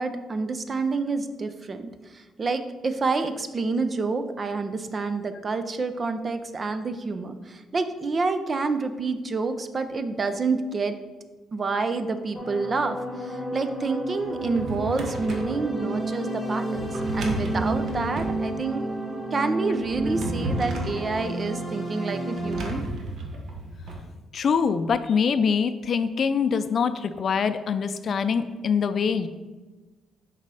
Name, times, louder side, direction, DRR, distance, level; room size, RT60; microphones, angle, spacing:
voice 1, 0.0-10.9 11.5-18.9 19.3-22.8, right 4 dB, 35° right, 9 dB, 0.6 m, -28 dB
sound 1, 12.3-22.8, right 1 dB, 10° left, 1.7 m, -31 dB
Drawer open or close, 14.2-15.6 16.7-18.4 19.7-21.0 22.3-24.0, right 1 dB, 65° right, 1.2 m, -33 dB
voice 2, 24.3-29.3, left 6 dB, 50° left, 11 dB, 0.4 m, -24 dB
6.6 x 4.1 x 4.8 m, 1.3 s
cardioid pair, 90°, 0 cm